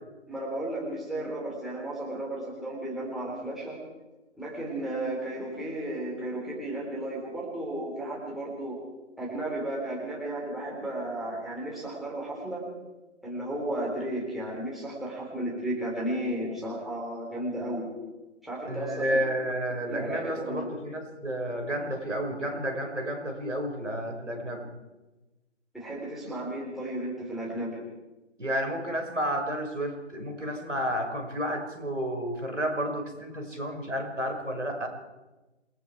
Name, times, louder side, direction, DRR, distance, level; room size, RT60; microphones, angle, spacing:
voice 1, 0.3-3.8 4.3-8.8 9.2-12.7 13.2-17.9 18.4-19.2 19.9-20.7 25.7-27.8, right 1 dB, ahead, -6 dB, 3.4 m, -34 dB
voice 2, 18.7-24.7 28.4-34.9, equal, 85° right, 4 dB, 5.7 m, -31 dB
27.5 x 20.0 x 4.7 m, 1.1 s
figure-of-eight pair, 150°, 36 cm